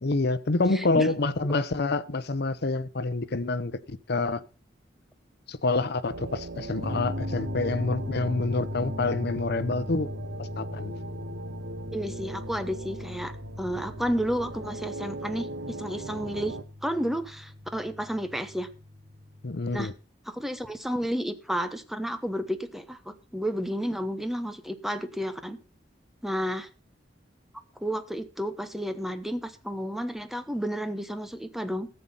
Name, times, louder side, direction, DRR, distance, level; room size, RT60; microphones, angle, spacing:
voice 1, 0.0-4.4 5.5-10.1 10.4-10.9 19.4-19.9, left 3 dB, 60° left, 0.8 m, -27 dB
voice 2, 0.7-1.1 11.9-15.5 15.8-16.6 16.8-18.7 19.7-19.9 20.3-25.6 26.2-26.7 27.8-31.9, equal, ahead, 1.1 m, -31 dB
sound 1, 6.1-16.6, right 2 dB, 85° right, 1.1 m, -40 dB
sound 2, 6.8-19.7, left 1 dB, 40° right, 2.0 m, -39 dB
14.0 x 7.9 x 5.5 m
head